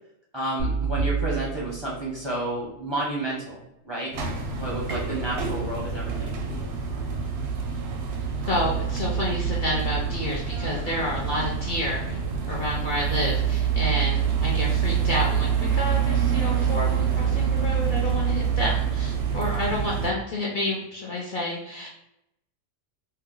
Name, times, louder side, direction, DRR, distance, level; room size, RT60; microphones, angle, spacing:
voice 1, 0.3-4.1 4.6-6.3, right 1 dB, 30° right, -5 dB, 0.5 m, -31 dB
sound 1, 0.6-2.8, right 5 dB, 35° left, 1.0 m, -30 dB
sound 2, 4.1-20.1, right 7 dB, 65° right, 0.7 m, -26 dB
voice 2, 8.5-12.2 12.5-21.9, left 1 dB, 55° left, -4 dB, 0.6 m, -29 dB
2.8 x 2.1 x 3.6 m, 0.83 s
omnidirectional pair, 1.3 m